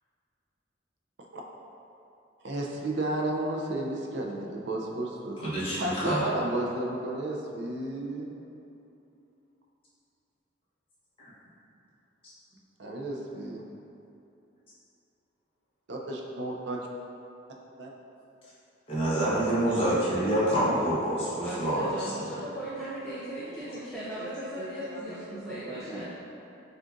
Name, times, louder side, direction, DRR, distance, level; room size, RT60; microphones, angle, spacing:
voice 1, 2.4-5.5 5.8-8.3 12.8-13.6 15.9-16.8 17.8-17.9 23.5-24.2 24.5-26.0, right 1 dB, 65° right, -1 dB, 0.5 m, -33 dB
voice 2, 5.4-6.2 18.9-22.4, right 1 dB, 30° left, -10 dB, 1.1 m, -27 dB
voice 3, 21.4-26.0, right 1 dB, 5° left, -10 dB, 0.4 m, -37 dB
6.2 x 2.5 x 2.5 m, 2.8 s
head